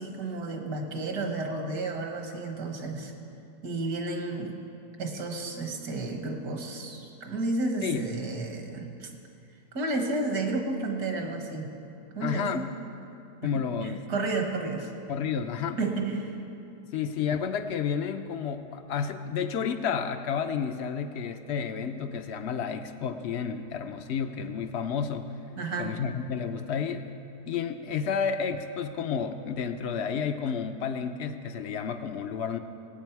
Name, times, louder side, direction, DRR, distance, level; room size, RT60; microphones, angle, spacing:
voice 1, 0.0-3.1 3.6-4.6 5.0-9.1 9.7-11.7 12.2-12.7 13.6-14.9 15.8-16.3 25.6-25.9, right 2 dB, 70° right, 3 dB, 1.9 m, -32 dB
voice 2, 12.2-12.7 13.4-14.0 15.1-15.8 16.9-25.4 25.8-27.1 27.5-32.6, left 7 dB, 70° left, 8 dB, 0.6 m, -31 dB
20.0 x 9.0 x 4.6 m, 2.7 s
omnidirectional pair, 1.7 m